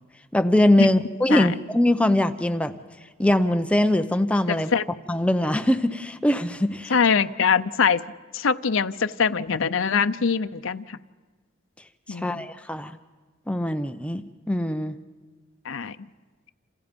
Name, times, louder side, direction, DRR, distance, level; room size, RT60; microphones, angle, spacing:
voice 1, 0.3-2.7 3.2-4.7 5.1-6.9 12.1-12.9 13.5-14.2 14.5-14.9, left 1 dB, 5° left, 8 dB, 0.6 m, -22 dB
voice 2, 4.5-4.8 6.9-8.0 8.3-11.0 12.1-12.5 15.6-16.0, left 6 dB, 75° left, 10 dB, 0.6 m, -23 dB
28.5 x 28.0 x 5.3 m, 1.4 s
head